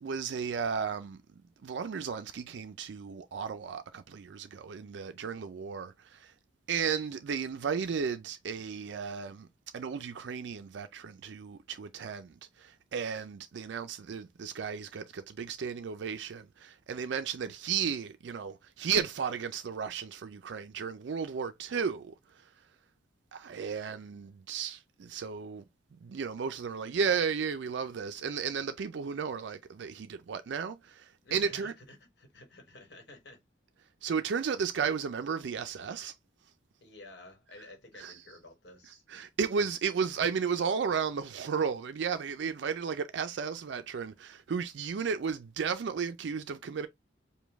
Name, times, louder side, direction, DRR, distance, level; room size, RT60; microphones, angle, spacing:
voice 1, 0.0-6.3 6.7-9.5 9.7-22.5 23.3-25.6 26.0-31.7 34.0-36.1 38.0-38.2 39.1-46.9, right 6 dB, 65° right, 0.4 m, -34 dB
voice 2, 31.2-33.4 36.8-39.0, left 2 dB, 60° left, 1.2 m, -52 dB
5.1 x 2.2 x 3.4 m
head